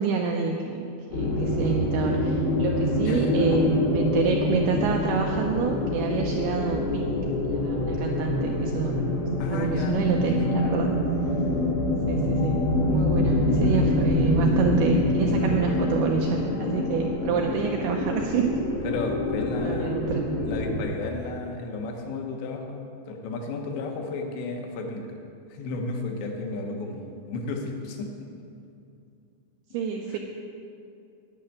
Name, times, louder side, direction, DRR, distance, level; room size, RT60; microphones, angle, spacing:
voice 1, 0.0-7.2 7.5-9.0 9.5-10.9 12.1-18.6 19.6-20.3 29.7-30.2, right 6 dB, 85° right, 1 dB, 2.3 m, -28 dB
sound 1, 1.1-20.8, left 1 dB, 60° left, 1.4 m, -25 dB
voice 2, 3.0-3.8 9.4-10.7 18.8-20.0 20.4-25.1 25.5-28.1 30.1-30.2, left 3 dB, 75° left, 2 dB, 3.2 m, -33 dB
10.5 x 6.5 x 8.8 m, 2.5 s
omnidirectional pair, 5.3 m